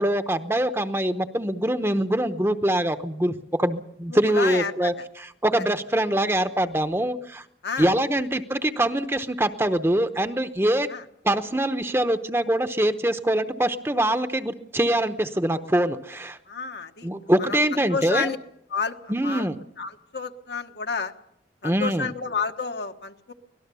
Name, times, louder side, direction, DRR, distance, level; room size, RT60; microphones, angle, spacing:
voice 1, 0.0-7.4 7.8-10.9 11.2-16.4 17.0-18.3 19.1-19.6 21.6-22.1, right 1 dB, 15° right, 9 dB, 0.8 m, -24 dB
voice 2, 4.1-5.1 7.6-7.9 10.9-11.0 16.5-17.1 17.5-18.4 18.7-19.5 19.8-21.1 21.6-23.3, left 5 dB, 70° left, 6 dB, 1.4 m, -30 dB
24.5 x 18.0 x 6.9 m, 0.72 s
head